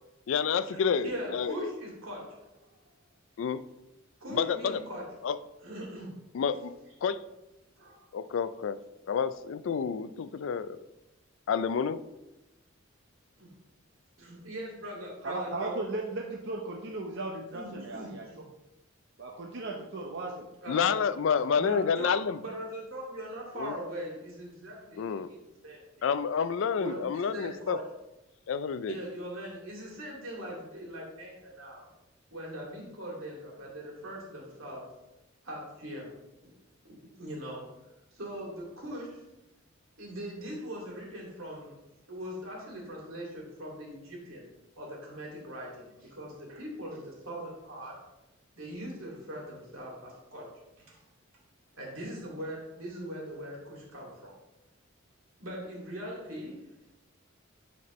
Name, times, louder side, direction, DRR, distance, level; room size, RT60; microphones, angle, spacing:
voice 1, 0.3-1.7 3.4-3.6 4.3-4.8 5.2-5.4 6.3-6.7 7.0-7.2 8.1-8.8 9.1-10.8 11.5-12.0 20.7-22.4 23.6-23.8 25.0-25.3 26.0-27.8 28.5-29.0, left 6 dB, 65° left, 14 dB, 0.3 m, -29 dB
voice 2, 1.0-2.9 4.2-5.0 5.6-6.1 7.8-8.1 13.4-13.5 14.2-15.8 17.5-18.5 20.6-20.9 21.5-22.1 22.4-26.0 26.8-27.8 28.9-31.9 32.3-34.8 35.4-36.1 36.4-36.6 36.8-37.7 38.1-39.2 40.0-41.8 42.1-44.5 44.8-48.0 48.5-51.0 51.7-54.3 55.4-56.6, equal, 85° right, -3 dB, 2.4 m, -41 dB
voice 3, 15.2-18.3 19.2-20.5, right 2 dB, 55° right, 0 dB, 0.7 m, -36 dB
10.5 x 4.3 x 3.1 m, 0.96 s
head